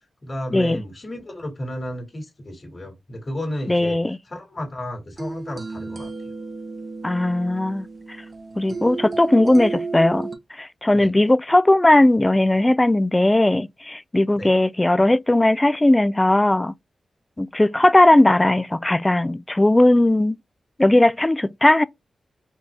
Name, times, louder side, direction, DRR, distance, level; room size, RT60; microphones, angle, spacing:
voice 1, 0.2-4.0 4.3-6.1 10.9-11.1 14.3-14.5, left 1 dB, 40° left, 2.0 m, -32 dB
voice 2, 3.7-4.2 7.0-7.9 8.6-10.3 10.6-16.7 17.4-20.4 20.8-21.8, left 1 dB, 20° left, 0.3 m, -18 dB
sound 1, 5.2-10.4, right 3 dB, 40° right, 0.7 m, -33 dB
4.5 x 2.6 x 3.3 m
cardioid pair, 55°, 0 cm